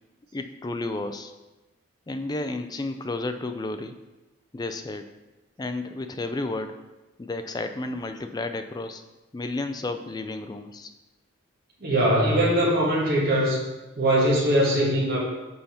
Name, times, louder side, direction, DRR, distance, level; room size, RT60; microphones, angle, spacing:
voice 1, 0.3-1.3 2.1-4.0 4.5-5.1 5.6-6.8 7.2-9.0 9.3-10.9, left 2 dB, 20° left, 8 dB, 0.3 m, -32 dB
voice 2, 11.8-13.6 14.0-15.2, right 1 dB, 45° right, -4 dB, 1.4 m, -21 dB
5.5 x 4.2 x 5.7 m, 1.1 s
head